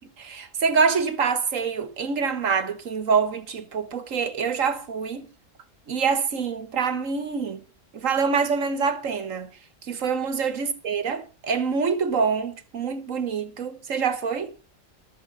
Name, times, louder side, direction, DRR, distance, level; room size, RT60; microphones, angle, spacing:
voice 1, 0.2-5.3 5.9-7.6 7.9-9.5 9.9-14.5, right 5 dB, 80° right, 1.7 m, -25 dB
14.0 x 7.4 x 5.3 m
omnidirectional pair, 1.3 m